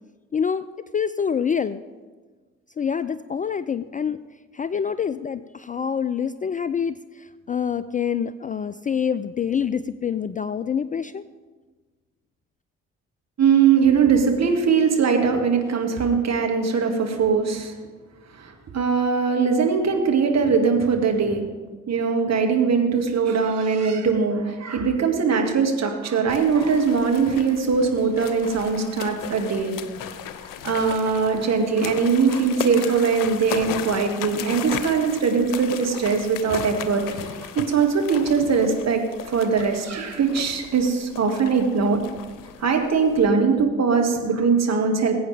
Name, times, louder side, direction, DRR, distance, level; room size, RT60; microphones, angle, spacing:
voice 1, 0.3-0.7 0.9-1.8 2.8-4.2 4.5-11.2, left 7 dB, 20° left, 14 dB, 0.4 m, -26 dB
voice 2, 13.4-17.7 18.3-21.4 21.9-29.8 30.6-39.0 39.3-42.0 42.6-45.2, right 5 dB, 45° right, 2 dB, 2.3 m, -21 dB
sound 1, 26.3-43.3, left 10 dB, 60° left, 0.9 m, -36 dB
21.0 x 8.7 x 3.5 m, 1.4 s
figure-of-eight pair, 45°, 37 cm